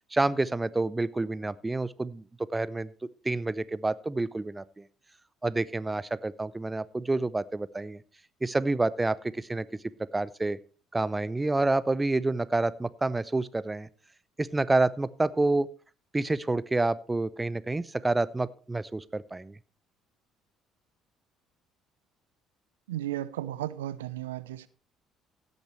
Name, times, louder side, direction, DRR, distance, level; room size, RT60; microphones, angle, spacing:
voice 1, 0.1-2.2 2.5-2.9 3.2-4.8 5.4-8.0 8.4-9.7 10.1-10.6 10.9-13.9 14.4-15.7 16.1-19.6, right 2 dB, 15° right, 0.7 m, -28 dB
voice 2, 22.9-24.7, right 13 dB, 80° right, 0.5 m, -34 dB
16.5 x 8.0 x 3.2 m
hypercardioid pair, 55°, 0 cm